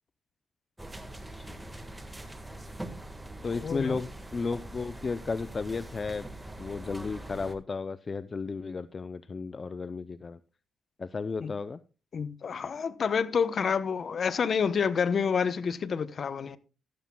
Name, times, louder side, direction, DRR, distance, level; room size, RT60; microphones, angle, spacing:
sound 1, 0.8-7.5, right 1 dB, 10° right, 1.6 m, -43 dB
voice 1, 1.3-1.6 3.4-6.3 6.6-10.4 11.0-11.8, left 4 dB, 40° left, 0.5 m, -34 dB
voice 2, 3.6-4.0 11.4-11.5 12.1-16.6, left 6 dB, 55° left, 0.8 m, -28 dB
14.0 x 13.5 x 2.2 m
cardioid pair, 75°, 0 cm